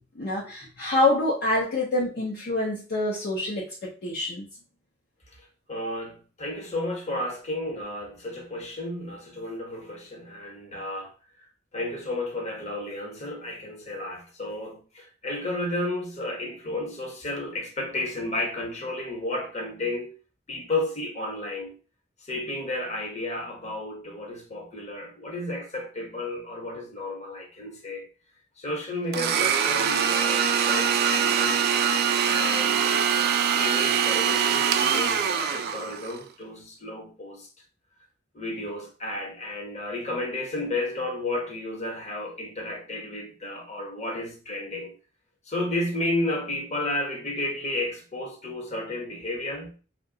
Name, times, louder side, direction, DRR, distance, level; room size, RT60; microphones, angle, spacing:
voice 1, 0.2-4.4, left 2 dB, 55° left, 0.6 m, -26 dB
voice 2, 5.4-11.1 11.4-20.1 20.5-21.7 22.2-28.1 28.6-31.7 32.2-37.5 38.3-44.9 45.4-49.7, left 1 dB, 35° left, 1.0 m, -32 dB
Domestic sounds home sounds, 29.1-36.2, right 7 dB, 55° right, 0.3 m, -23 dB
2.7 x 2.2 x 3.8 m
head